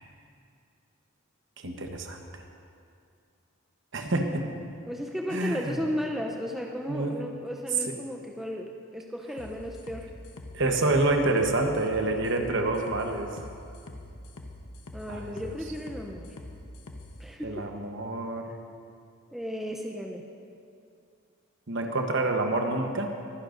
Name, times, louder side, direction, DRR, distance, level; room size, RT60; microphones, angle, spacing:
voice 1, 1.6-2.2 3.9-4.4 5.3-5.8 6.9-7.2 7.9-8.0 10.5-13.4 15.1-15.5 17.4-18.5 21.7-23.1, right 2 dB, 55° right, 4 dB, 1.0 m, -27 dB
voice 2, 4.9-10.1 14.9-16.4 17.2-17.7 19.3-20.2, equal, ahead, 0 dB, 0.5 m, -34 dB
sound 1, 9.4-17.1, left 1 dB, 90° left, 0.9 m, -44 dB
22.0 x 10.5 x 2.6 m, 2.4 s
head